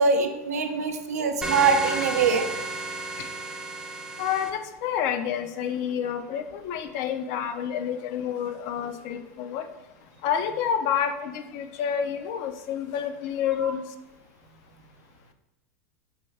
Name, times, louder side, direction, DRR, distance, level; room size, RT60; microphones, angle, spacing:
voice 1, 0.0-2.5 13.6-13.7, right 5 dB, 85° right, 6 dB, 0.4 m, -23 dB
sound 1, 1.4-4.5, right 2 dB, 10° right, 0.5 m, -32 dB
voice 2, 3.9-9.9 10.2-14.0, left 8 dB, 55° left, 8 dB, 0.4 m, -29 dB
4.3 x 2.3 x 3.3 m, 1.0 s
hypercardioid pair, 90°, 8 cm